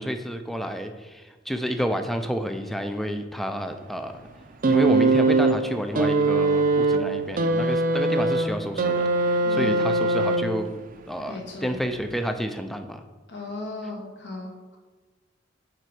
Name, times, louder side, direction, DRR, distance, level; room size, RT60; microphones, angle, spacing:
voice 1, 0.0-4.2 4.7-10.8 11.1-13.0, equal, ahead, 7 dB, 0.5 m, -30 dB
sound 1, 4.6-10.8 11.8-12.0, right 2 dB, 45° right, 0.6 m, -22 dB
voice 2, 9.4-9.9 11.3-11.8 13.3-14.8, left 2 dB, 65° left, 0 dB, 1.6 m, -36 dB
8.7 x 4.0 x 4.9 m, 1.3 s
head